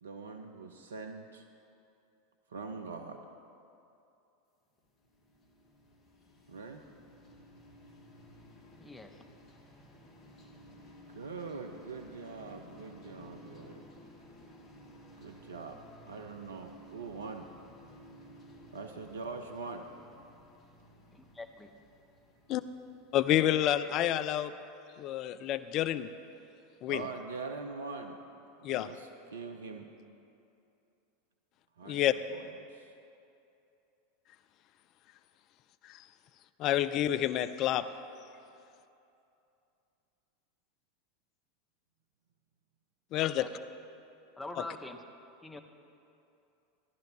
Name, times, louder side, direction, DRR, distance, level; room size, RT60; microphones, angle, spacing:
voice 1, 0.0-1.5 2.5-3.2 6.5-6.8 11.1-13.9 15.2-15.8 16.1-17.5 18.7-19.9 26.9-28.2 28.6-29.9 31.8-32.9, right 4 dB, 80° right, 5 dB, 0.6 m, -43 dB
sound 1, 4.8-23.8, left 1 dB, 30° left, 1.7 m, -55 dB
voice 2, 8.8-9.2 21.1-21.7 43.2-43.5 44.4-45.0 45.4-45.6, left 2 dB, 10° left, 6 dB, 0.8 m, -44 dB
voice 3, 23.1-24.5 25.0-26.1 26.8-27.0 28.6-28.9 31.9-32.1 35.9-36.0 36.6-37.9 43.1-43.5, left 12 dB, 45° left, 13 dB, 0.4 m, -28 dB
16.5 x 11.5 x 2.8 m, 2.7 s
figure-of-eight pair, 85°, 0 cm